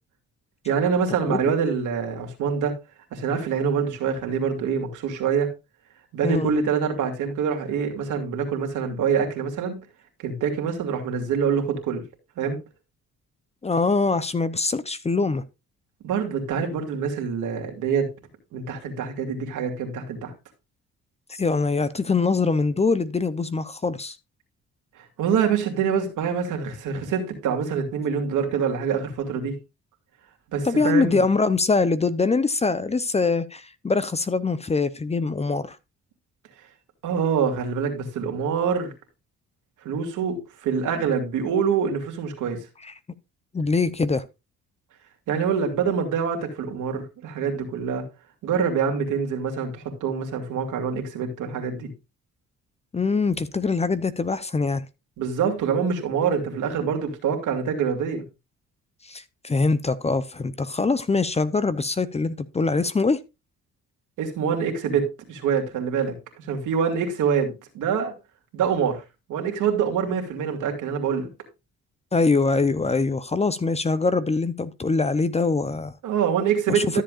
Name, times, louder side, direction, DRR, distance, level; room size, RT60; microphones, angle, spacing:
voice 1, 0.6-2.8 3.1-5.5 6.1-9.8 10.2-12.0 12.4-12.6 16.0-18.1 18.5-20.3 25.2-29.6 30.5-31.2 37.0-38.9 39.8-42.6 45.3-48.0 48.4-51.9 55.2-58.2 64.2-68.1 68.5-69.0 69.3-71.3 76.0-77.0, right 6 dB, 85° right, 2.4 m, -25 dB
voice 2, 13.6-15.4 21.3-24.2 30.6-35.8 42.8-42.9 43.5-44.2 52.9-54.8 59.0-63.2 72.1-75.9 76.7-77.0, left 4 dB, 20° left, 0.7 m, -23 dB
13.0 x 7.5 x 2.5 m
cardioid pair, 90°, 30 cm